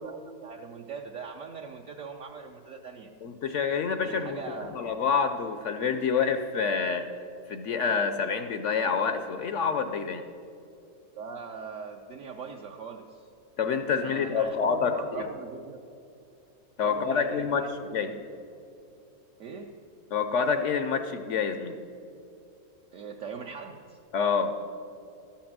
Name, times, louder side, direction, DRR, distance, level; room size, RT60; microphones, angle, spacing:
voice 1, 0.0-3.1 4.0-4.9 11.2-13.3 14.0-15.8 16.8-18.3 19.4-19.7 22.9-24.0, right 5 dB, 65° right, 2 dB, 0.9 m, -41 dB
voice 2, 3.2-4.4 4.7-7.1 7.5-10.2 13.6-15.2 16.8-18.1 20.1-21.8 24.1-24.5, left 6 dB, 65° left, 8 dB, 0.8 m, -27 dB
13.0 x 6.0 x 7.3 m, 2.6 s
omnidirectional pair, 1.6 m